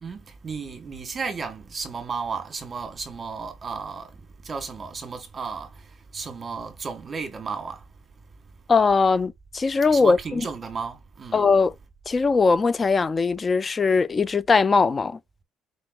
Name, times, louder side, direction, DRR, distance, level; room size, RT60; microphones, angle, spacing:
voice 1, 0.0-7.9 9.9-11.4, right 5 dB, 30° right, 1.5 m, -34 dB
voice 2, 8.7-10.4 11.3-11.7 12.1-15.2, left 4 dB, 25° left, 0.4 m, -20 dB
4.7 x 4.2 x 2.4 m
cardioid pair, 115°, 0 cm